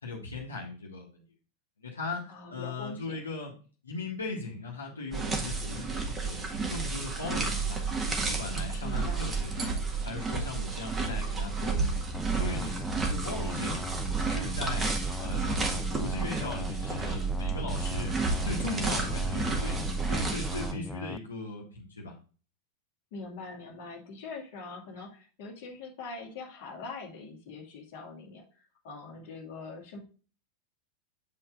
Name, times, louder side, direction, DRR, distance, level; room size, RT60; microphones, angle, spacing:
voice 1, 0.0-1.2 1.8-3.5 3.8-7.8 8.1-9.8 10.0-12.0 12.3-13.8 14.3-18.1 18.4-19.8 20.1-22.1, left 3 dB, 75° left, -2 dB, 1.7 m, -38 dB
voice 2, 2.3-3.2 8.8-9.3 23.1-30.0, left 3 dB, 50° left, 0 dB, 2.0 m, -43 dB
sound 1, 5.1-20.7, right 4 dB, 20° right, 1.8 m, -31 dB
sound 2, 12.1-21.2, left 2 dB, 5° left, 0.4 m, -40 dB
8.2 x 4.5 x 3.8 m, 0.37 s
figure-of-eight pair, 90°, 0 cm